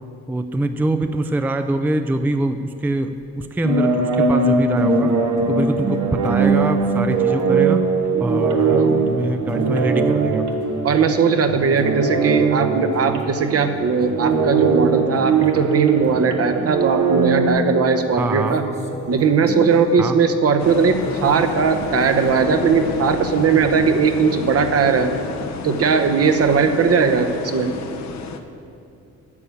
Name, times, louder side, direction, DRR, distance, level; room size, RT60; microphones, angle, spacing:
voice 1, 0.3-5.1 5.5-7.9 8.2-10.4 18.2-18.6 20.0-20.2, right 1 dB, 5° right, 8 dB, 0.4 m, -24 dB
sound 1, 3.2-3.5 3.8-3.9 4.5-22.5, left 1 dB, 20° left, 1.3 m, -36 dB
sound 2, 3.6-11.4 11.7-17.5, right 4 dB, 75° right, 1.3 m, -20 dB
voice 2, 10.8-18.6 19.1-25.1 25.6-27.7, right 5 dB, 50° right, 7 dB, 1.0 m, -18 dB
sound 3, 20.6-28.4, left 5 dB, 65° left, 0.9 m, -31 dB
9.8 x 6.7 x 8.5 m, 2.6 s
cardioid pair, 90°, 30 cm